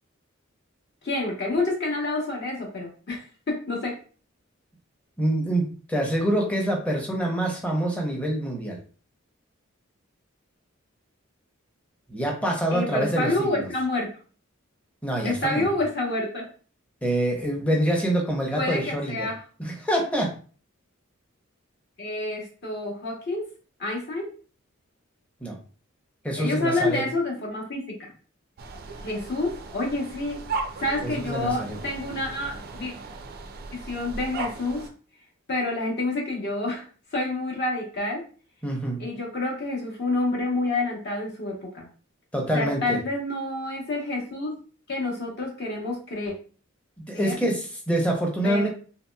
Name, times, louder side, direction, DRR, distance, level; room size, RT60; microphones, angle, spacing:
voice 1, 1.0-4.0 12.7-14.1 15.2-16.4 18.6-19.4 22.0-23.4 23.8-24.3 26.4-28.1 29.0-30.4 30.8-32.9 33.7-34.9 35.5-36.8 37.1-38.2 39.0-41.9 42.5-44.5 44.9-46.3 47.1-47.4 48.4-48.7, left 2 dB, 50° left, -2 dB, 0.8 m, -28 dB
voice 2, 5.2-8.8 12.1-13.7 15.0-15.7 17.0-19.3 19.6-20.3 25.4-25.6 26.2-27.0 31.0-31.8 38.6-39.0 42.3-43.0 47.0-48.7, right 1 dB, 5° left, 0 dB, 0.6 m, -26 dB
sound 1, 28.6-34.9, right 3 dB, 45° right, 0.3 m, -36 dB
2.9 x 2.8 x 2.2 m, 0.40 s
head